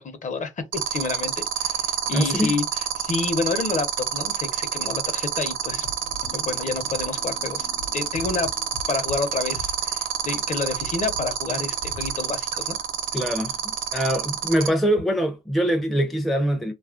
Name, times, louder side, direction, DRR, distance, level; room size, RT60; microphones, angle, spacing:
voice 1, 0.0-5.9 6.3-7.7 7.9-8.5 8.9-12.8, left 4 dB, 40° left, 0.7 m, -29 dB
sound 1, 0.7-14.7, right 10 dB, 80° right, 0.6 m, -27 dB
voice 2, 2.1-2.6 13.1-16.7, equal, ahead, 0.4 m, -23 dB
sound 2, 5.7-10.4 10.6-12.3, left 2 dB, 90° left, 0.7 m, -41 dB
2.9 x 2.3 x 2.4 m
cardioid pair, 90°, 20 cm